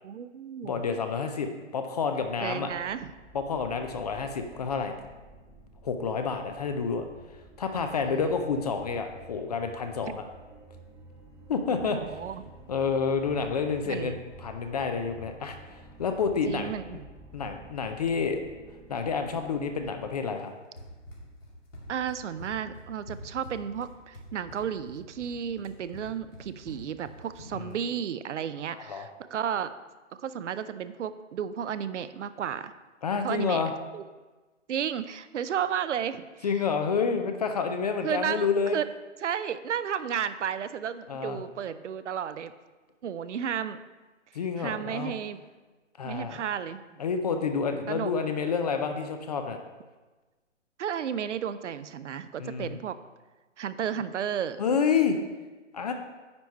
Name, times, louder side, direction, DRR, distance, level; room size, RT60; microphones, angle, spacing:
voice 1, 0.0-0.8 2.4-3.1 8.1-8.3 11.8-12.4 13.9-14.2 16.4-17.0 21.9-29.7 30.2-32.7 33.2-33.6 33.9-34.0 34.7-36.5 38.0-38.9 39.2-42.5 43.0-43.8 44.6-45.4 46.0-46.8 47.9-48.1 50.8-53.0 53.6-54.6, right 8 dB, 65° right, 13 dB, 0.6 m, -33 dB
voice 2, 0.6-2.7 3.3-4.9 5.8-7.0 7.6-10.2 11.5-12.0 12.7-16.7 17.3-18.4 18.9-20.5 27.5-27.7 28.7-29.1 33.0-33.7 36.4-38.8 41.1-41.4 44.3-45.1 46.0-46.4 47.0-49.6 52.4-52.7 54.6-55.2 55.7-55.9, left 5 dB, 35° left, 6 dB, 0.5 m, -29 dB
sound 1, 2.0-20.1, right 2 dB, 5° right, 1.1 m, -51 dB
Run, 20.8-27.8, left 1 dB, 90° left, 2.7 m, -46 dB
9.6 x 4.5 x 5.4 m, 1.2 s
hypercardioid pair, 140°, 38 cm